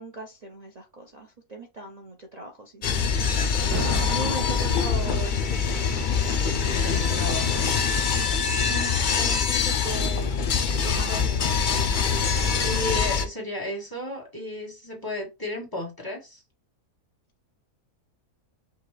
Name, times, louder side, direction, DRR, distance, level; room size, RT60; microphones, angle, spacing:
voice 1, 0.0-3.4 4.1-5.4 8.7-10.4 10.8-11.5, right 3 dB, 55° right, 0.4 m, -39 dB
sound 1, 2.8-13.2, left 6 dB, 85° left, 0.4 m, -24 dB
Thunder, 3.6-8.6 9.2-9.4 10.1-12.9 13.2-13.3, right 4 dB, 80° right, 1.6 m, -39 dB
voice 2, 6.4-7.7 11.1-11.3 12.6-16.4, left 1 dB, 15° left, 1.3 m, -33 dB
5.7 x 2.4 x 3.2 m
omnidirectional pair, 1.6 m